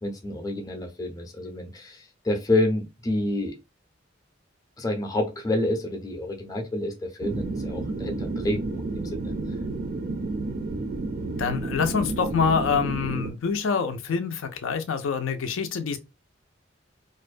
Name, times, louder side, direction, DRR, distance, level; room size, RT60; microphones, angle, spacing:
voice 1, 0.0-3.6 4.8-9.3, left 1 dB, 20° left, 0.5 m, -28 dB
sound 1, 7.2-13.3, right 3 dB, 45° right, 0.3 m, -31 dB
voice 2, 11.4-16.0, left 6 dB, 80° left, 0.4 m, -26 dB
2.4 x 2.1 x 2.4 m
head